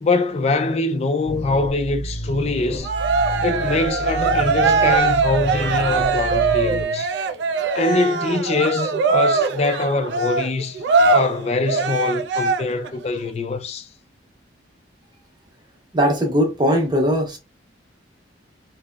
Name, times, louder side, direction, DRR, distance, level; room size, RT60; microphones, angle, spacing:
voice 1, 0.0-2.9 3.4-7.1 7.7-10.8 11.1-13.9, left 3 dB, 35° left, 0.3 m, -23 dB
sound 1, 1.3-6.8, equal, 60° left, 0.8 m, -31 dB
Cheering, 2.8-12.9, right 4 dB, 65° right, 0.3 m, -21 dB
voice 2, 15.9-17.4, equal, 25° right, 0.7 m, -19 dB
2.9 x 2.0 x 2.2 m
head